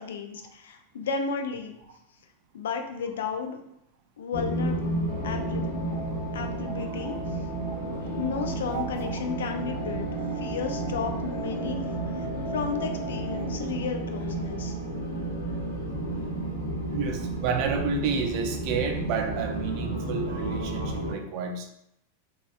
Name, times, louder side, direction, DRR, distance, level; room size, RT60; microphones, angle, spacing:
voice 1, 0.0-1.8 2.5-3.6 4.2-4.9 5.2-5.7 6.3-7.4 8.2-10.1 10.4-11.8 12.2-14.8, left 5 dB, 60° left, 5 dB, 0.3 m, -33 dB
sound 1, 4.3-21.1, right 2 dB, 80° left, 0.7 m, -32 dB
sound 2, 5.1-13.5, right 1 dB, 25° left, 0.6 m, -40 dB
voice 2, 6.6-7.2 7.6-7.8 8.3-9.2 16.9-21.7, right 5 dB, 45° right, 5 dB, 0.4 m, -31 dB
3.2 x 2.3 x 2.5 m, 0.78 s
figure-of-eight pair, 90°, 0 cm